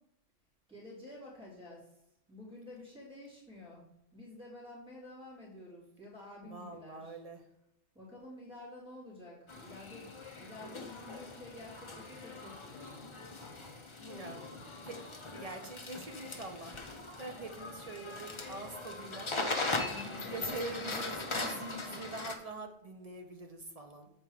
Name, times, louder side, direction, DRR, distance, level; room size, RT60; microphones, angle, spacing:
voice 1, 0.7-2.0 2.3-3.8 4.1-7.2 7.9-13.0 13.3-13.7 14.2-14.6 19.9-20.4, left 2 dB, 5° right, -7 dB, 2.9 m, -50 dB
voice 2, 6.4-7.4 14.0-14.4 14.8-15.1 15.4-16.8 17.2-19.3 20.3-24.1, right 2 dB, 35° right, 4 dB, 0.8 m, -44 dB
sound 1, 9.5-22.4, left 3 dB, 25° left, 0.8 m, -40 dB
7.6 x 4.4 x 4.9 m, 0.82 s
omnidirectional pair, 1.3 m